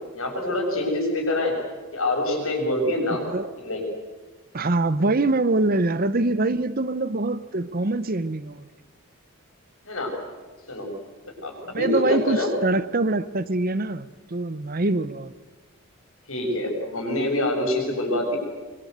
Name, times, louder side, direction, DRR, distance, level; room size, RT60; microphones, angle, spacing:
voice 1, 0.1-1.5 1.9-3.2 3.6-3.8 9.9-10.1 10.7-10.9 11.4-12.5 16.3-18.4, left 1 dB, 70° left, 7.0 m, -25 dB
voice 2, 4.5-8.7 11.6-15.3, right 2 dB, 40° right, 0.8 m, -24 dB
24.0 x 23.5 x 8.1 m
head